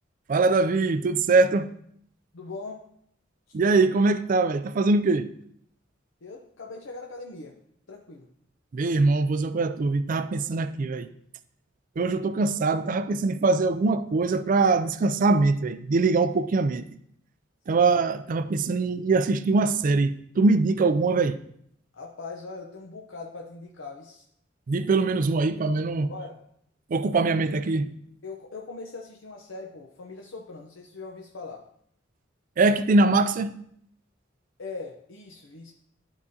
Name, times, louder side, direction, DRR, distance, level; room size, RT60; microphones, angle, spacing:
voice 1, 0.3-1.7 3.5-5.3 8.7-11.1 12.0-16.9 17.7-21.4 24.7-26.1 26.9-27.9 32.6-33.5, right 3 dB, 45° right, 0.4 m, -22 dB
voice 2, 2.3-2.8 6.2-7.6 7.9-8.3 12.0-12.1 17.7-17.8 21.9-24.2 26.1-26.4 28.2-31.6 34.6-35.7, left 3 dB, 85° left, 0.8 m, -40 dB
11.5 x 4.8 x 2.8 m
head